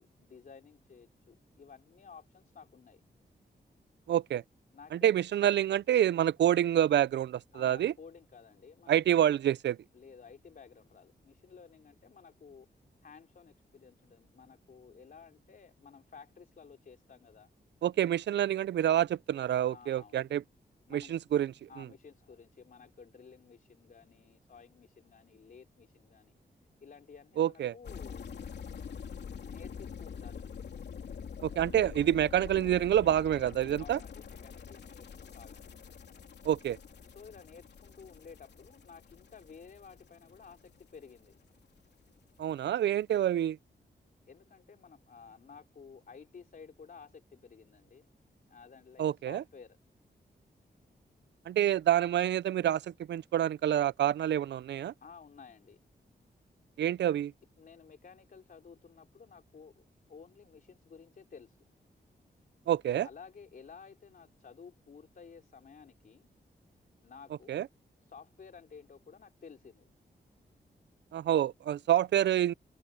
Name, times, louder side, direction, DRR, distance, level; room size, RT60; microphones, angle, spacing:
voice 1, 0.0-3.0 4.7-5.1 7.5-9.0 9.9-12.7 13.0-17.5 19.7-20.4 20.9-21.1 21.7-26.4 26.8-28.3 29.4-30.5 33.8-35.7 37.1-41.4 44.3-48.1 48.5-49.8 55.0-55.8 57.6-61.6 63.0-66.3 67.0-67.6 68.1-69.9, left 6 dB, 55° left, 3.5 m, -53 dB
voice 2, 4.1-4.4 4.9-7.9 8.9-9.8 17.8-20.4 20.9-21.9 27.4-27.7 31.4-34.0 36.4-36.8 42.4-43.6 49.0-49.4 51.5-54.9 56.8-57.3 62.7-63.1 67.5-67.7 71.1-72.5, right 11 dB, 85° right, 0.4 m, -27 dB
sound 1, 27.8-41.9 42.2-42.4, left 7 dB, 75° left, 3.2 m, -46 dB
open air
wide cardioid pair, 165°, 18 cm